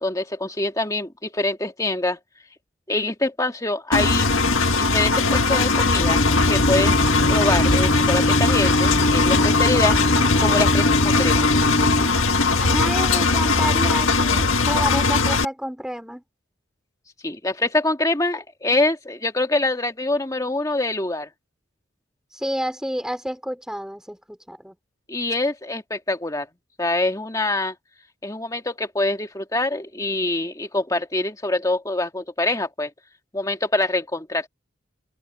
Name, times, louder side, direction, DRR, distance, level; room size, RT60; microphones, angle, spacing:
voice 1, 0.0-2.2 2.9-4.3 4.8-7.0 7.3-10.0 10.4-11.5 17.2-21.3 25.1-26.5 26.8-27.7 28.2-32.9 33.3-34.5, left 2 dB, 15° left, 2.0 m, -25 dB
Engine, 3.9-15.4, left 3 dB, 90° left, 1.9 m, -20 dB
sound 1, 6.0-12.1, left 1 dB, 45° left, 2.6 m, -23 dB
voice 2, 12.6-16.2 22.3-24.7, equal, 5° right, 3.2 m, -29 dB
open air
head